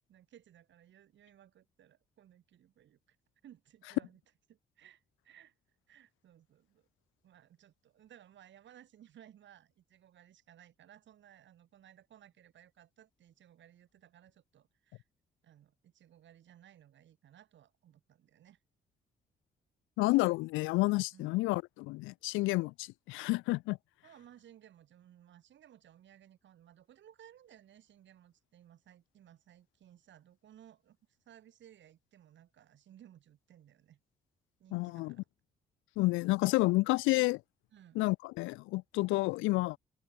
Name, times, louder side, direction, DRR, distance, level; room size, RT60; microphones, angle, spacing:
voice 1, 0.0-3.2 3.4-4.2 4.5-5.5 5.9-6.9 7.2-15.0 15.4-18.6 21.1-21.4 24.0-31.0 31.3-34.0 34.6-35.3 37.7-38.0, right 11 dB, 65° right, 7.1 m, -60 dB
voice 2, 20.0-23.8 34.7-35.1 36.0-37.4 37.9-39.8, left 21 dB, 75° left, 0.7 m, -30 dB
hypercardioid pair, 45°, 20 cm